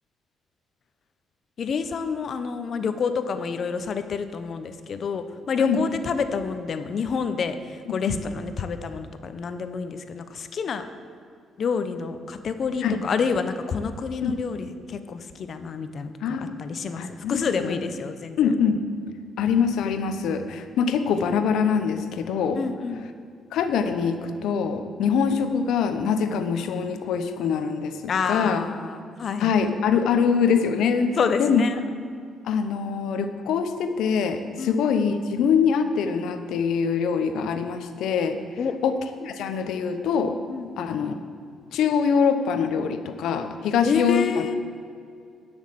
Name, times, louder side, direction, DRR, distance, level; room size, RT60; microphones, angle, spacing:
voice 1, 1.6-10.9 11.6-18.4 22.5-23.1 28.1-29.5 31.2-31.8 34.6-34.8 38.6-38.7 40.5-40.7 43.8-44.6, left 5 dB, 55° left, 10 dB, 0.8 m, -28 dB
voice 2, 16.2-16.5 17.0-17.8 18.4-18.8 19.4-22.6 23.5-27.9 28.3-28.6 29.4-31.6 32.4-38.4 38.8-39.0 39.2-40.4 40.8-41.1 41.7-44.5, left 6 dB, 80° left, 8 dB, 0.9 m, -24 dB
10.5 x 6.4 x 7.6 m, 2.3 s
cardioid pair, 90°, 0 cm